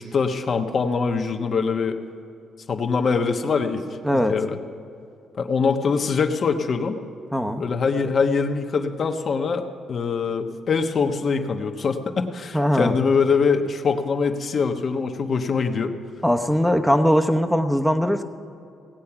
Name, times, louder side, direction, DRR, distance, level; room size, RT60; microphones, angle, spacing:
voice 1, 0.0-2.0 2.7-3.8 4.1-4.6 5.4-7.0 7.6-9.6 9.9-15.9, left 5 dB, 50° left, 5 dB, 1.1 m, -23 dB
voice 2, 7.3-7.6 12.5-13.0 16.2-18.2, equal, ahead, 6 dB, 0.9 m, -20 dB
18.0 x 8.5 x 5.9 m, 2.5 s
cardioid pair, 90°, 0 cm